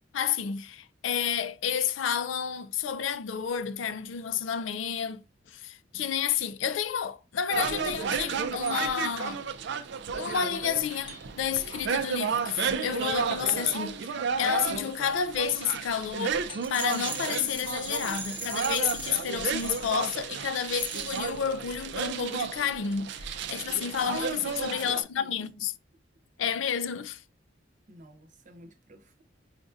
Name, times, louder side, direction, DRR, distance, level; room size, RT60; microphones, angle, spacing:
voice 1, 0.1-5.2 5.5-9.4 10.1-25.7 26.4-27.2, left 8 dB, 80° left, 0.4 m, -30 dB
sound 1, 7.5-25.0, right 6 dB, 65° right, 0.4 m, -33 dB
sound 2, 11.1-11.7 13.3-14.0 16.5-17.1, left 3 dB, 30° left, 0.7 m, -49 dB
Rattle, 16.6-20.2 20.7-21.4, right 3 dB, 10° right, 0.5 m, -40 dB
voice 2, 24.3-25.5 27.9-29.2, right 1 dB, 45° right, 0.8 m, -52 dB
5.1 x 2.5 x 2.4 m
head